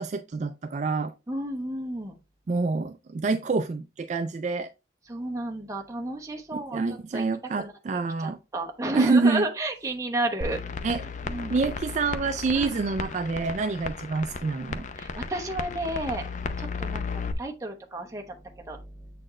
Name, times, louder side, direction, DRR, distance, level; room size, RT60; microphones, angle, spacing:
voice 1, 0.0-1.1 2.5-4.7 6.5-8.4 8.9-9.5 10.8-11.0 11.5-14.9, right 4 dB, 40° right, 0.3 m, -27 dB
voice 2, 1.3-2.2 5.1-7.2 7.6-7.7 8.2-10.6 11.2-11.5 12.5-12.7 15.0-16.3 16.6-19.1, right 2 dB, 20° right, 1.0 m, -32 dB
sound 1, 10.4-17.3, left 4 dB, 45° left, 0.5 m, -34 dB
7.5 x 4.3 x 3.2 m
head